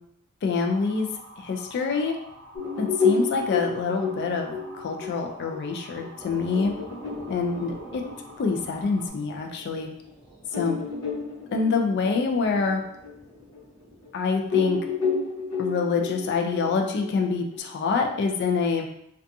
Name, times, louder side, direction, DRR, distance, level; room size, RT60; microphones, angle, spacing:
voice 1, 0.4-1.1 1.4-2.2 2.8-6.7 7.3-8.0 8.4-9.9 10.5-10.8 11.5-12.8 14.1-14.8 15.6-18.9, left 4 dB, 50° left, 3 dB, 0.3 m, -26 dB
Motor vehicle (road) / Siren, 0.6-9.1, right 1 dB, 50° right, 0.4 m, -47 dB
sound 1, 2.5-9.6 10.0-10.1 10.5-14.1 14.5-17.6, left 5 dB, 80° left, 0.9 m, -30 dB
sound 2, 6.2-15.2 15.5-16.2 16.5-16.9 17.3-17.4, right 2 dB, ahead, 0.8 m, -49 dB
2.5 x 2.3 x 2.6 m, 0.75 s
head